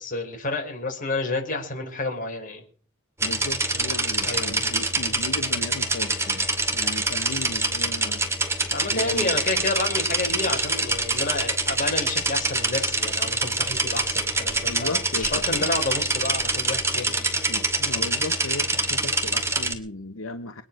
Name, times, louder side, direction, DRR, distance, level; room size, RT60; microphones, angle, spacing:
voice 1, 0.0-2.6 4.2-4.6 8.7-17.4, left 2 dB, 40° left, 3 dB, 5.0 m, -30 dB
voice 2, 3.2-8.2 8.9-9.5 14.7-15.7 17.5-20.6, left 2 dB, 75° left, 8 dB, 1.1 m, -35 dB
sound 1, 3.2-19.7, right 2 dB, 15° right, 2.4 m, -25 dB
22.0 x 10.0 x 6.3 m, 0.43 s
head